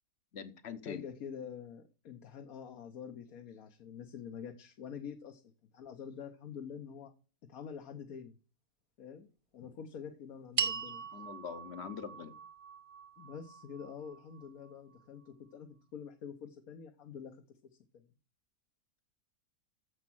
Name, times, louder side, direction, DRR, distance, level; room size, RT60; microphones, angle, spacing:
voice 1, 0.3-1.0 11.1-12.3, left 7 dB, 50° left, 1.1 m, -43 dB
voice 2, 0.8-7.1 7.5-8.4 9.0-9.3 9.5-11.2 13.2-17.4, left 7 dB, 70° left, 1.5 m, -46 dB
sound 1, 10.6-15.0, right 5 dB, 30° right, 0.6 m, -40 dB
9.6 x 7.3 x 6.1 m
omnidirectional pair, 1.6 m